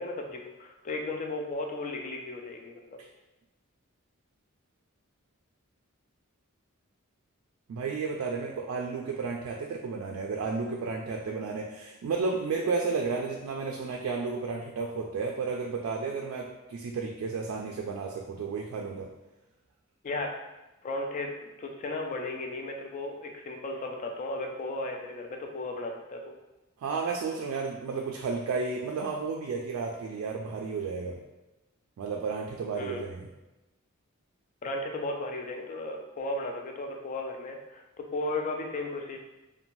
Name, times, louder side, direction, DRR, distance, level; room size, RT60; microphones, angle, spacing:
voice 1, 0.0-3.0 20.0-20.4 20.8-21.3 21.6-26.2 32.8-33.0 34.6-39.2, left 2 dB, 35° left, 2 dB, 0.3 m, -35 dB
voice 2, 7.7-19.1 26.8-31.2 32.0-33.3, right 4 dB, 75° right, 1 dB, 0.3 m, -32 dB
2.6 x 2.2 x 2.9 m, 1.0 s
head